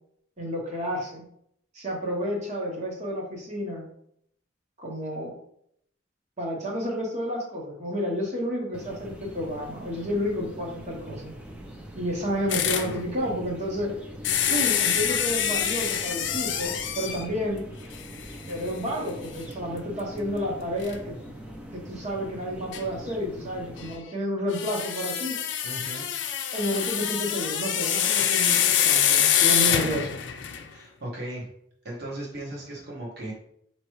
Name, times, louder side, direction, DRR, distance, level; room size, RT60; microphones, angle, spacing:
voice 1, 0.4-1.3 1.7-3.9 4.8-5.4 6.4-11.3 11.9-13.9 14.4-17.7 18.5-21.2 21.7-25.4 26.5-30.2, equal, 35° right, -1 dB, 1.0 m, -30 dB
sound 1, 8.7-23.9, equal, 5° right, 0.5 m, -42 dB
sound 2, 12.5-12.9 14.2-17.3 17.9-18.0 18.5-18.6 20.8-20.9 22.7-22.8 24.5-30.7, left 9 dB, 70° left, 0.5 m, -25 dB
voice 2, 12.6-12.9 25.6-26.1 30.7-31.5 31.8-33.3, right 2 dB, 55° right, -5 dB, 1.2 m, -36 dB
4.4 x 3.0 x 3.1 m, 0.69 s
head